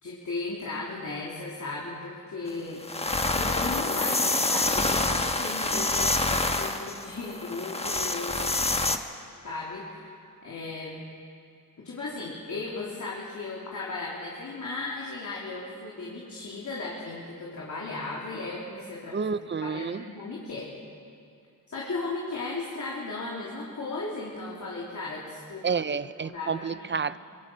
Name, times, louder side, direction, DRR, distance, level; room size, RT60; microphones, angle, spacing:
voice 1, 0.0-2.8 3.3-8.6 9.4-10.1 10.4-11.0 11.8-19.2 19.6-20.7 21.7-25.8 26.2-26.9, left 3 dB, 60° left, -4 dB, 3.2 m, -36 dB
sound 1, 2.5-2.6 2.8-9.0, left 2 dB, 20° left, 1.2 m, -27 dB
voice 2, 19.1-20.0 25.6-27.2, right 5 dB, 35° right, 15 dB, 0.6 m, -29 dB
23.5 x 20.0 x 5.7 m, 2.5 s
cardioid pair, 75°, 34 cm